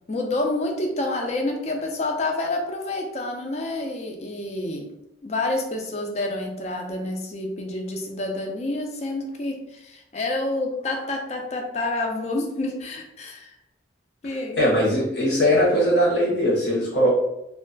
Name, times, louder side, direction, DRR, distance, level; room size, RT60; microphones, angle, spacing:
voice 1, 0.1-4.9 5.2-13.6 14.2-14.6, left 2 dB, 35° left, 2 dB, 0.4 m, -28 dB
voice 2, 14.6-17.1, equal, 65° left, -6 dB, 0.7 m, -20 dB
2.2 x 2.0 x 3.8 m, 0.86 s
head